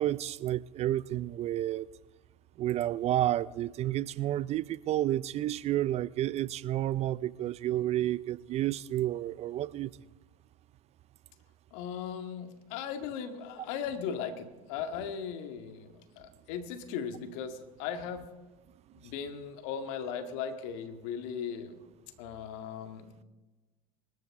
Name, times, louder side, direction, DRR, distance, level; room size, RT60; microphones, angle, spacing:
voice 1, 0.0-1.9 2.6-9.9, right 13 dB, 35° right, 0.4 m, -30 dB
voice 2, 11.7-18.2 19.0-21.8 22.2-23.1, left 7 dB, 65° left, 2.0 m, -38 dB
24.5 x 13.0 x 3.7 m
hypercardioid pair, 85°, 18 cm